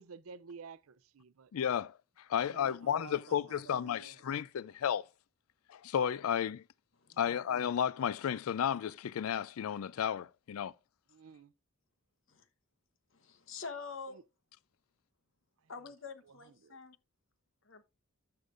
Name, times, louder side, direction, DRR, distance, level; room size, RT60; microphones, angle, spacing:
voice 1, 0.0-1.5 2.4-4.2 7.1-7.4 11.1-11.5 14.1-14.2 15.6-15.7 16.2-16.8, right 5 dB, 85° right, 0.5 m, -52 dB
voice 2, 1.5-5.1 5.7-6.6 7.2-10.7, left 8 dB, 90° left, 0.4 m, -33 dB
voice 3, 13.1-14.2 15.7-17.0 17.6-17.8, left 5 dB, 65° left, 1.1 m, -46 dB
12.5 x 6.8 x 2.5 m
head